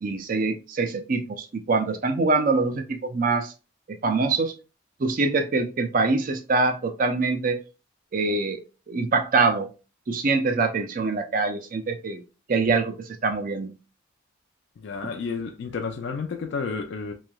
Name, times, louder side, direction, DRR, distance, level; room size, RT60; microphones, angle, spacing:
voice 1, 0.0-3.5 3.9-4.5 5.0-7.6 8.1-8.6 8.9-9.7 10.1-12.2 12.5-13.7, right 3 dB, 45° right, 0.5 m, -24 dB
voice 2, 14.8-17.1, left 5 dB, 65° left, 0.4 m, -31 dB
3.1 x 2.8 x 2.2 m
head